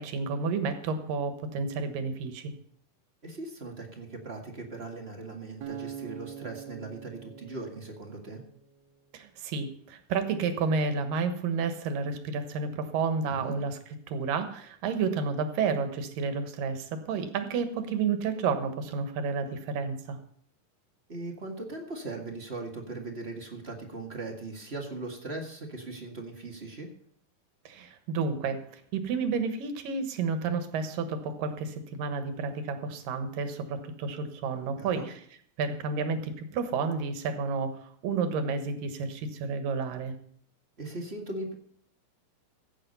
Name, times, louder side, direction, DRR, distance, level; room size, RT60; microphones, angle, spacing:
voice 1, 0.0-2.5 9.1-13.8 14.1-20.2 27.7-35.2 35.6-40.1, right 5 dB, 75° right, 8 dB, 3.0 m, -31 dB
voice 2, 3.2-8.4 13.2-13.5 21.1-26.9 34.8-35.1 40.8-41.5, right 2 dB, 30° right, 1 dB, 1.3 m, -39 dB
Acoustic guitar, 5.6-8.8, right 8 dB, 60° right, 2.3 m, -43 dB
16.0 x 8.6 x 5.5 m, 0.62 s
omnidirectional pair, 4.0 m